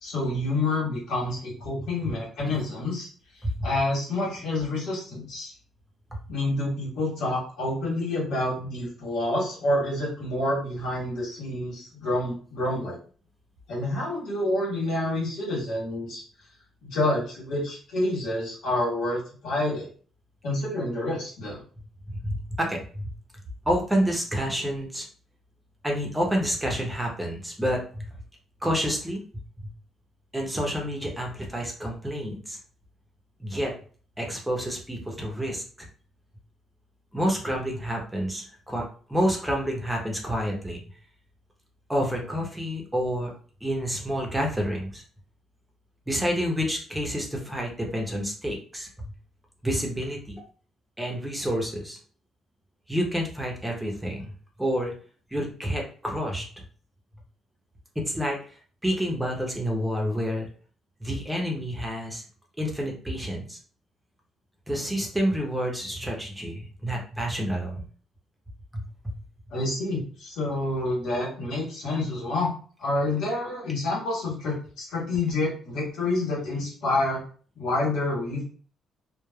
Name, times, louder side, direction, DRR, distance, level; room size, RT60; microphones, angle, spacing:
voice 1, 0.0-3.1 3.6-5.5 6.3-13.0 13.7-16.2 16.8-19.9 20.4-21.6 69.5-72.5 72.8-77.2 77.5-78.4, left 2 dB, 85° left, -4 dB, 1.4 m, -28 dB
voice 2, 22.1-23.0 23.7-25.0 25.8-28.1 28.6-29.2 29.6-29.7 30.3-32.6 33.4-33.7 34.2-35.9 37.1-38.8 39.1-40.8 41.9-43.3 43.6-45.0 46.1-48.9 49.6-50.4 51.0-52.0 52.9-54.3 54.6-54.9 55.3-56.5 58.0-58.4 58.8-60.5 61.0-62.2 62.6-63.6 64.7-67.8 68.7-69.1, equal, 10° right, 0 dB, 0.7 m, -28 dB
3.2 x 2.1 x 2.2 m, 0.42 s
cardioid pair, 90°, 0 cm